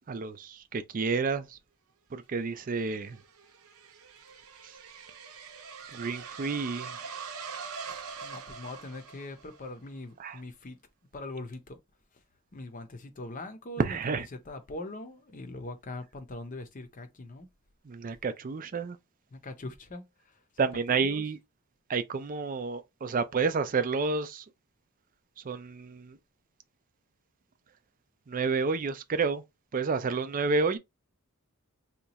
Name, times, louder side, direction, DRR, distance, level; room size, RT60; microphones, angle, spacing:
voice 1, 0.1-1.6 2.1-3.2 4.6-4.8 5.9-7.0 10.2-10.4 13.8-14.3 17.8-19.0 20.6-21.4 21.9-24.4 25.4-26.2 28.3-29.4 29.7-30.8, right 4 dB, 40° right, 0.4 m, -30 dB
sound 1, 2.6-9.7, right 6 dB, 80° right, 0.8 m, -43 dB
voice 2, 7.9-10.8 11.1-11.8 12.1-12.2 12.5-17.5 19.3-21.3, left 2 dB, 35° left, 0.6 m, -42 dB
2.9 x 2.2 x 4.0 m
head